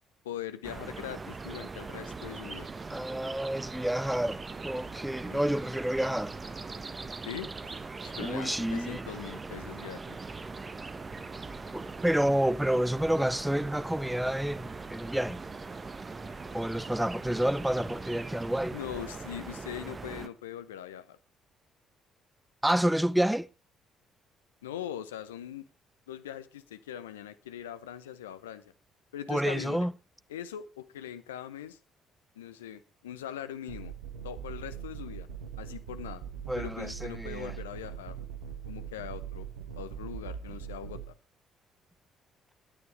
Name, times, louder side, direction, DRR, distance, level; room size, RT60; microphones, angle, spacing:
voice 1, 0.2-2.7 5.3-5.5 7.2-7.5 8.0-10.2 18.7-21.2 24.6-25.6 26.1-28.7 29.1-29.9 30.3-31.8 32.4-33.9 34.2-35.3 35.6-36.2 36.6-38.2 38.7-39.5 39.7-41.1, left 10 dB, 80° left, 0.7 m, -41 dB
sound 1, 0.6-20.3, right 4 dB, 30° right, 1.3 m, -41 dB
voice 2, 2.9-6.4 8.2-9.0 11.7-15.4 16.5-18.8 22.6-23.5 29.3-29.9 36.5-37.6, right 1 dB, 5° right, 0.7 m, -29 dB
sound 2, 33.7-41.1, right 8 dB, 75° right, 1.4 m, -41 dB
20.0 x 9.7 x 3.4 m
figure-of-eight pair, 45°, 0 cm